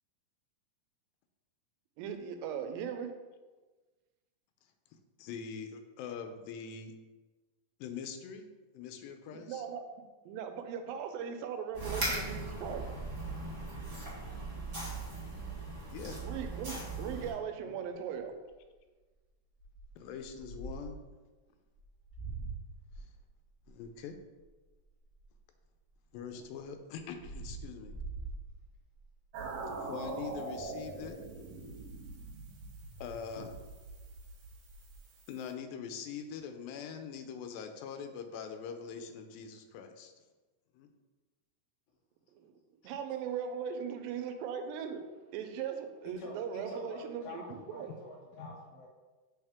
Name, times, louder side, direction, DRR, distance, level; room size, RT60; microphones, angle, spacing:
voice 1, 2.0-3.1 9.3-9.9 10.3-12.9 16.1-18.3 42.3-42.5 42.8-45.0 45.3-47.9, right 7 dB, 85° right, 7 dB, 2.3 m, -39 dB
voice 2, 5.2-6.9 7.8-8.5 8.7-9.7 15.9-16.2 20.0-21.0 23.0-23.1 23.7-24.2 26.1-27.9 29.8-31.2 33.0-33.5 35.3-40.1 40.7-40.9 48.4-48.5, left 6 dB, 90° left, 6 dB, 2.4 m, -43 dB
sound 1, 11.7-17.3, right 2 dB, 35° right, 1.3 m, -38 dB
sound 2, 15.4-16.8 17.3-17.4 17.7-17.9 18.4-18.7 19.6-21.0 21.7-25.6 26.1-29.1 29.6-29.9 30.1-30.2 30.5-31.3 32.9-33.0 33.4-33.7 34.0-35.0, right 3 dB, 30° left, 0.6 m, -46 dB
sound 3, 29.3-35.5, right 3 dB, 70° right, 1.8 m, -43 dB
voice 3, 46.0-48.9, left 2 dB, 65° left, -2 dB, 2.2 m, -47 dB
7.9 x 3.6 x 3.5 m, 1.3 s
omnidirectional pair, 4.0 m